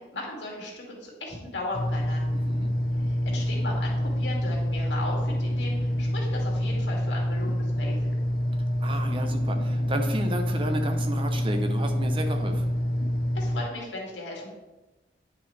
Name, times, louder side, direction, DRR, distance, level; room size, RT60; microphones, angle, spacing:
voice 1, 0.0-2.4 3.1-8.1 13.3-14.5, left 2 dB, 80° left, -2 dB, 2.2 m, -37 dB
sound 1, 1.7-13.6, equal, 55° left, 0.8 m, -27 dB
voice 2, 2.3-2.7 8.8-12.8, right 1 dB, 30° right, 5 dB, 0.7 m, -32 dB
9.7 x 5.8 x 3.3 m, 1.1 s
head